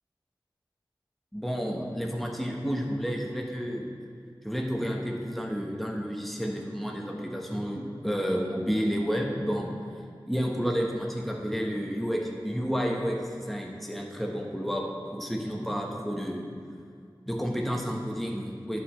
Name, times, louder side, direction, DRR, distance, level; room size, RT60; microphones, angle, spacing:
voice 1, 1.3-3.8 4.4-9.7 10.3-14.9 15.1-16.5 17.3-18.8, equal, ahead, -1 dB, 1.2 m, -30 dB
10.5 x 6.2 x 3.3 m, 2.2 s
wide cardioid pair, 45°, 9 cm